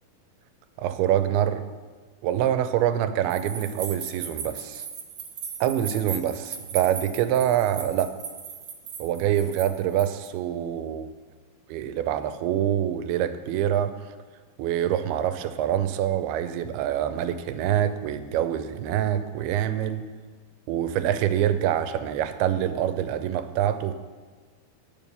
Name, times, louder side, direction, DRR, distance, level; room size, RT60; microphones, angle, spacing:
voice 1, 0.8-1.6 2.2-4.9 5.6-8.1 9.0-11.1 11.7-13.9 14.6-20.1 20.7-23.9, right 10 dB, 85° right, 11 dB, 2.6 m, -25 dB
sound 1, 3.3-10.3, right 7 dB, 65° right, 2.5 m, -37 dB
8.9 x 7.0 x 6.8 m, 1.4 s
omnidirectional pair, 4.4 m